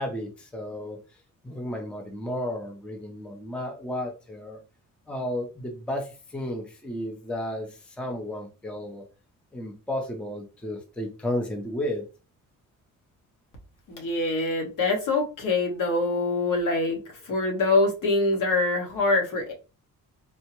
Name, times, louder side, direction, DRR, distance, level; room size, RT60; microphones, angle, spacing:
voice 1, 0.0-4.6 5.1-9.1 9.5-12.0, left 1 dB, 5° left, 3 dB, 0.5 m, -33 dB
voice 2, 13.9-19.5, left 2 dB, 65° left, 1 dB, 1.2 m, -24 dB
3.5 x 2.1 x 2.9 m, 0.32 s
cardioid pair, 120°, 34 cm